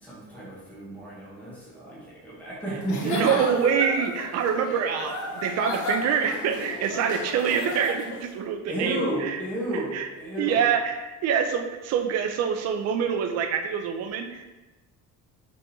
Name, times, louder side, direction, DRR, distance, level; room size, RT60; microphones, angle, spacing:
voice 1, 0.0-3.3 8.7-10.6, right 1 dB, 5° left, -8 dB, 0.9 m, -32 dB
Giggle / Chuckle chortle, 2.8-8.3, left 2 dB, 65° left, 0.6 m, -34 dB
voice 2, 3.0-9.4 9.9-10.1 10.4-14.5, right 7 dB, 55° right, 6 dB, 0.4 m, -25 dB
4.2 x 3.4 x 2.7 m, 1.1 s
cardioid pair, 175°, 32 cm